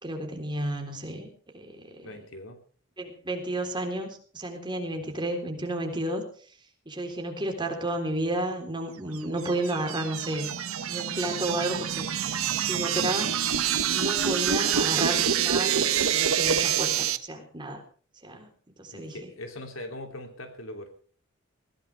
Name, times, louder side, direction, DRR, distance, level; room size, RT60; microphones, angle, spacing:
voice 1, 0.0-2.1 3.0-6.2 6.9-10.5 10.9-12.1 12.5-13.3 13.9-15.8 16.1-17.8 18.2-18.5 18.8-19.3, right 1 dB, 20° right, 3 dB, 3.8 m, -32 dB
voice 2, 2.0-2.6 5.0-5.2 18.9-20.9, left 1 dB, 70° left, 6 dB, 3.0 m, -41 dB
sound 1, 9.2-17.2, right 8 dB, 85° right, 1.1 m, -26 dB
20.5 x 16.5 x 3.4 m, 0.42 s
head